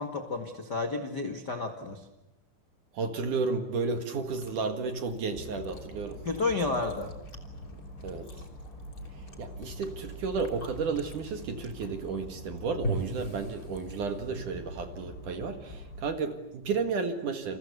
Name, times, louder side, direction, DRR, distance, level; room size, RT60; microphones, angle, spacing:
voice 1, 0.0-2.1 6.2-7.1, left 3 dB, 50° left, 5 dB, 1.2 m, -31 dB
voice 2, 2.9-6.2 8.0-8.3 9.2-17.6, right 4 dB, 55° right, 7 dB, 2.8 m, -32 dB
Chewing mastication, 4.2-14.3, right 1 dB, 20° left, 3.0 m, -43 dB
sound 1, 5.3-16.0, equal, 80° left, 8.0 m, -45 dB
29.0 x 28.5 x 6.9 m, 0.88 s
omnidirectional pair, 5.1 m